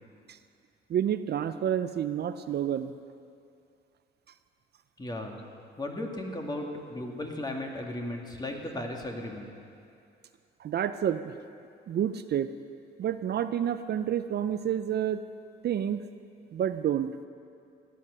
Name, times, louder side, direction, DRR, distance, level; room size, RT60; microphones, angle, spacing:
voice 1, 0.9-2.9 10.6-11.3 11.9-12.5 13.0-15.2 15.6-16.1 16.5-17.1, right 9 dB, 55° right, 11 dB, 0.5 m, -29 dB
voice 2, 5.0-5.4 5.8-9.5, left 1 dB, 20° left, 1 dB, 2.1 m, -36 dB
16.5 x 9.7 x 6.6 m, 2.4 s
cardioid pair, 90°, 20 cm